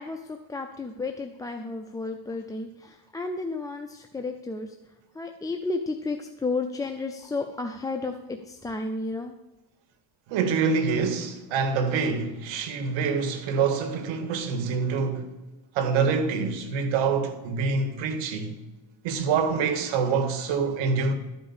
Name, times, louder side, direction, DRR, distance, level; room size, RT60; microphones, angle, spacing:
voice 1, 0.0-9.3, left 3 dB, 10° left, 0.4 m, -32 dB
voice 2, 10.3-15.3 15.7-18.6 19.0-21.1, right 5 dB, 75° right, 1.7 m, -26 dB
12.5 x 5.2 x 7.1 m
cardioid pair, 130°, 46 cm